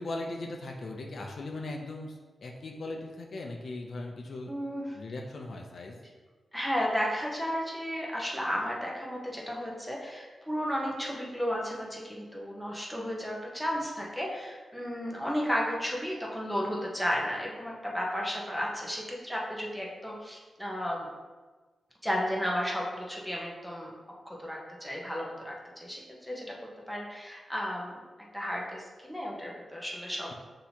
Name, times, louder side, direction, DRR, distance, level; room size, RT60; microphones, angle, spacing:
voice 1, 0.0-4.5 4.9-6.0, left 2 dB, 65° left, 1 dB, 0.5 m, -39 dB
voice 2, 4.5-5.0 6.5-21.1 22.0-23.9 24.3-26.5 26.9-28.0 28.3-30.3, equal, ahead, -3 dB, 0.8 m, -33 dB
6.2 x 2.8 x 2.8 m, 1.3 s
wide cardioid pair, 95°, 0 cm